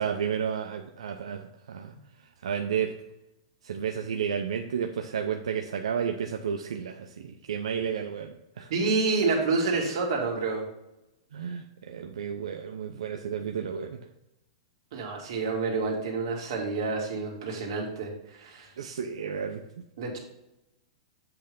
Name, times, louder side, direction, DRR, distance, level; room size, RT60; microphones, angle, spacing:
voice 1, 0.0-1.9 2.4-2.9 3.6-8.7 11.3-14.0 18.8-19.6, right 7 dB, 85° right, 4 dB, 0.5 m, -32 dB
voice 2, 8.7-10.6 14.9-18.7 20.0-20.2, right 4 dB, 55° right, 0 dB, 2.0 m, -28 dB
7.8 x 3.3 x 5.1 m, 0.90 s
hypercardioid pair, 150°, 3 cm